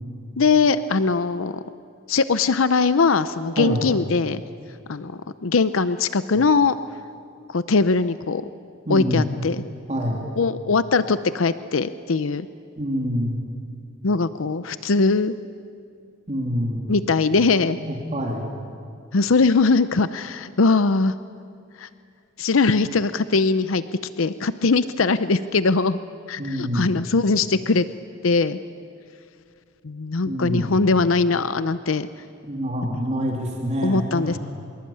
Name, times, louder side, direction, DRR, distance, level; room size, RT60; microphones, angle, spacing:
voice 1, 0.4-1.6 2.1-4.4 4.9-6.7 7.5-8.4 8.9-9.6 10.4-12.5 14.0-15.4 16.9-17.8 19.1-21.1 21.8-21.9 22.4-23.8 24.2-26.0 26.3-27.8 28.2-28.6 29.8-32.1 33.8-34.4, left 4 dB, 75° left, 13 dB, 0.7 m, -21 dB
voice 2, 8.8-9.2 9.9-10.2 12.8-13.4 16.3-16.9 17.8-18.5 26.4-26.9 30.3-30.8 32.4-34.4, equal, 35° right, -1 dB, 3.2 m, -26 dB
25.0 x 22.5 x 8.7 m, 2.3 s
head